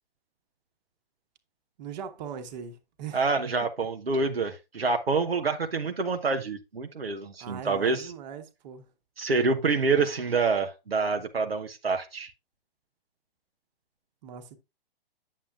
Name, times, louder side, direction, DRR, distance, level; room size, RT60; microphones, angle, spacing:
voice 1, 1.8-3.2 7.4-8.9 14.2-14.6, right 7 dB, 45° right, 1.4 m, -40 dB
voice 2, 3.1-8.1 9.2-12.3, right 4 dB, 90° right, 1.0 m, -27 dB
8.5 x 7.5 x 2.4 m
figure-of-eight pair, 120°, 29 cm